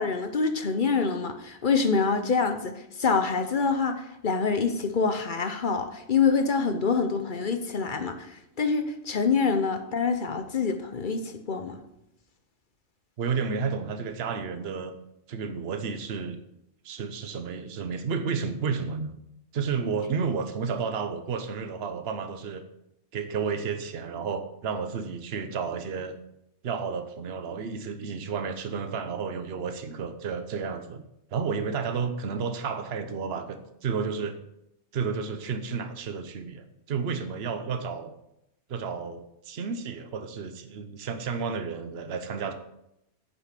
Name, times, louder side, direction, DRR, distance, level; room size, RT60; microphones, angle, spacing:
voice 1, 0.0-11.8, left 5 dB, 45° left, 8 dB, 0.9 m, -26 dB
voice 2, 13.2-14.9 15.3-16.4 16.8-19.1 19.5-22.6 23.1-26.2 26.6-34.4 34.9-38.1 38.7-42.5, right 5 dB, 60° right, 9 dB, 1.1 m, -31 dB
9.9 x 6.9 x 5.8 m, 0.82 s
omnidirectional pair, 1.3 m